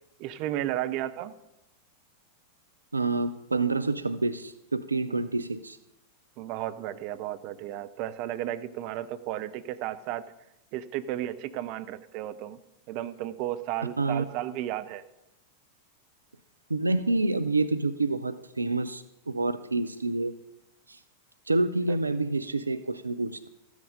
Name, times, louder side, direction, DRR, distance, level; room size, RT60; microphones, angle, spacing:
voice 1, 0.2-1.3 5.1-5.2 6.4-10.2 10.7-12.6 12.9-15.0 21.9-22.0, right 13 dB, 45° right, 12 dB, 0.6 m, -33 dB
voice 2, 2.9-5.8 14.0-14.2 16.7-20.3 20.9-21.0 21.5-23.5, right 3 dB, 80° right, 13 dB, 0.4 m, -28 dB
13.5 x 8.0 x 5.2 m, 0.89 s
figure-of-eight pair, 90°, 0 cm